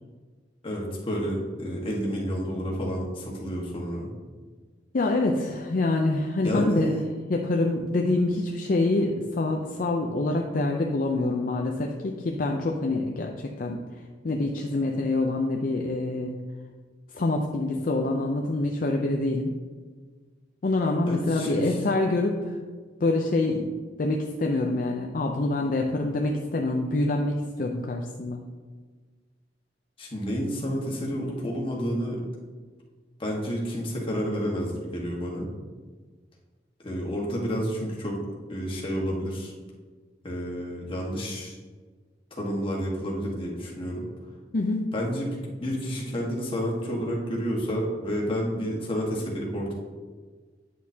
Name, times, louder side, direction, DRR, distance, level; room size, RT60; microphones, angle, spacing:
voice 1, 0.6-4.1 6.4-7.1 21.1-21.8 30.0-32.2 33.2-35.5 36.8-38.2 38.5-39.5 40.2-41.5 42.3-44.0 44.9-49.7, equal, 30° left, -2 dB, 1.4 m, -30 dB
voice 2, 4.9-7.0 7.3-13.8 14.2-16.4 17.1-19.5 20.6-22.6 23.0-23.7 24.0-28.4 44.5-44.8, left 2 dB, 50° left, 2 dB, 0.5 m, -26 dB
9.3 x 6.4 x 2.8 m, 1.4 s
head